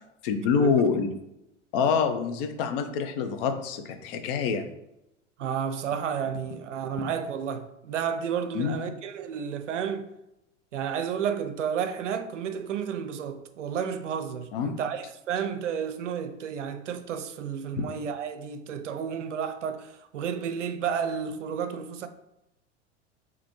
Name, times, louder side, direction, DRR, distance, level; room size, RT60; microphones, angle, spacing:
voice 1, 0.2-1.1 1.7-4.6 8.5-8.8 14.5-14.7 17.7-17.8, left 5 dB, 50° left, 0.6 m, -26 dB
voice 2, 5.4-10.1 10.7-22.1, right 7 dB, 75° right, 0.5 m, -31 dB
3.9 x 3.0 x 3.0 m
figure-of-eight pair, 85°, 37 cm